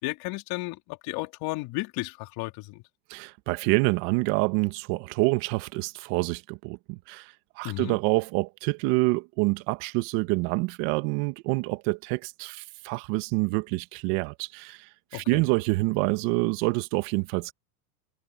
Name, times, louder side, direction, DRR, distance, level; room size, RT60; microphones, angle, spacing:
voice 1, 0.0-2.8 7.6-8.0 15.1-15.4, left 21 dB, 55° left, 4.2 m, -33 dB
voice 2, 3.1-14.9 15.1-17.5, right 24 dB, 60° right, 1.8 m, -27 dB
supercardioid pair, 120°, 45 cm